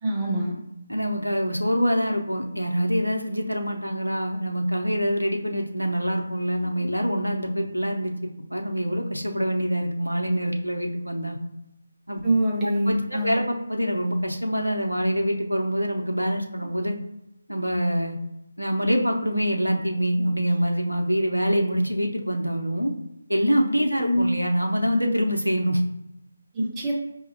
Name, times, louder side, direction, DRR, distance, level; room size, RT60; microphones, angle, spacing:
voice 1, 0.0-0.6 12.2-13.4 24.0-24.2 26.5-26.9, right 1 dB, 15° right, -4 dB, 0.8 m, -24 dB
voice 2, 0.9-8.1 8.5-11.4 12.1-12.2 12.6-17.0 17.5-18.2 18.6-22.9 23.3-25.8, equal, 85° right, 2 dB, 0.7 m, -25 dB
5.1 x 2.7 x 2.7 m, 0.85 s
figure-of-eight pair, 155°, 0 cm